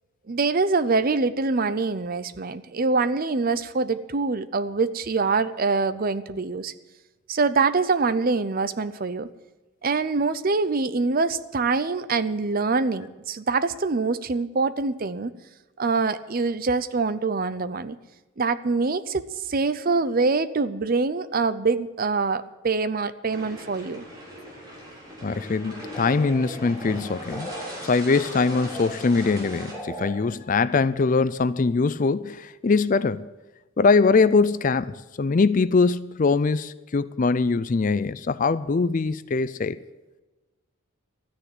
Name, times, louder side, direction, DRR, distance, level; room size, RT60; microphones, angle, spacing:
voice 1, 0.3-6.7 7.3-9.3 9.8-15.3 15.8-18.0 18.4-24.0, right 4 dB, 40° right, 0.6 m, -24 dB
sound 1, 23.3-29.7, equal, 20° right, 3.8 m, -40 dB
voice 2, 25.2-27.5 27.8-33.3 33.8-39.8, left 4 dB, 35° left, 0.4 m, -22 dB
sound 2, 25.6-27.7 28.0-30.1, equal, 5° left, 2.3 m, -39 dB
13.5 x 10.0 x 7.7 m
head